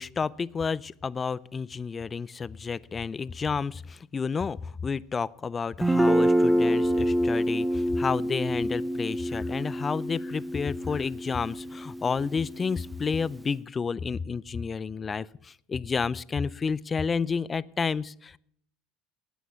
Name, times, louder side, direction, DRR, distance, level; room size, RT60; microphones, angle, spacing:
voice 1, 0.0-18.4, left 5 dB, 30° left, 21 dB, 0.4 m, -30 dB
Guitar, 5.8-13.5, equal, 10° right, 0.7 m, -27 dB
11.0 x 9.2 x 7.0 m, 0.66 s
hypercardioid pair, 75°, 0 cm